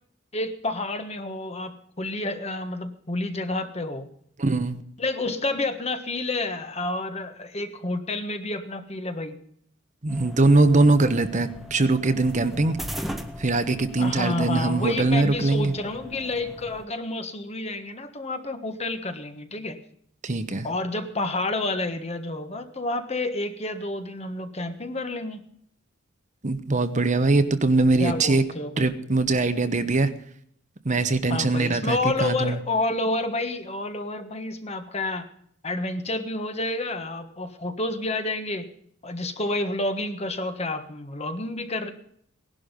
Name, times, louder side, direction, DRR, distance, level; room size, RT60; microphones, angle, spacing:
voice 1, 0.3-4.1 5.0-9.3 14.0-19.8 20.6-25.4 28.0-28.9 31.3-35.3 35.6-38.7 39.0-41.9, left 2 dB, 30° left, 8 dB, 1.4 m, -29 dB
voice 2, 4.4-4.8 10.0-12.8 13.4-15.7 20.2-20.7 26.4-28.4 28.8-30.1 30.8-32.6, right 2 dB, 40° right, 10 dB, 1.0 m, -22 dB
sound 1, 10.1-16.9, equal, ahead, 1.1 m, -39 dB
18.0 x 11.5 x 5.3 m, 0.67 s
head